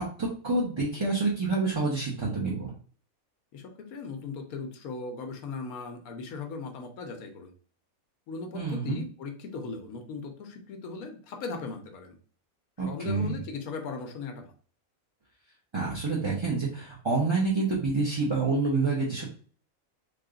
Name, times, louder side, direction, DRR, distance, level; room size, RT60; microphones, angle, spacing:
voice 1, 0.0-2.7 8.5-9.0 12.8-13.4 15.7-19.2, right 3 dB, 25° right, -5 dB, 0.6 m, -28 dB
voice 2, 3.5-7.5 8.3-12.2 12.8-14.5, left 4 dB, 85° left, 5 dB, 1.2 m, -38 dB
3.5 x 2.3 x 3.7 m, 0.43 s
omnidirectional pair, 1.5 m